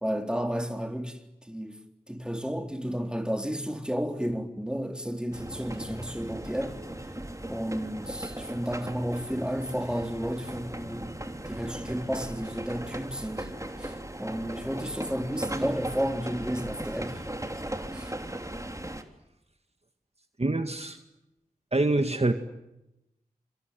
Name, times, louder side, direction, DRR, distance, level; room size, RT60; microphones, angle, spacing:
voice 1, 0.0-1.8 2.1-6.8 7.5-11.2 11.5-13.5 13.8-17.2 17.9-18.1, equal, 5° right, 3.8 m, -32 dB
sound 1, 5.3-19.0, right 1 dB, 20° right, 3.1 m, -37 dB
voice 2, 20.4-21.0 21.7-22.3, right 2 dB, 45° right, 1.9 m, -25 dB
26.0 x 24.5 x 9.3 m
wide cardioid pair, 40°, 15 cm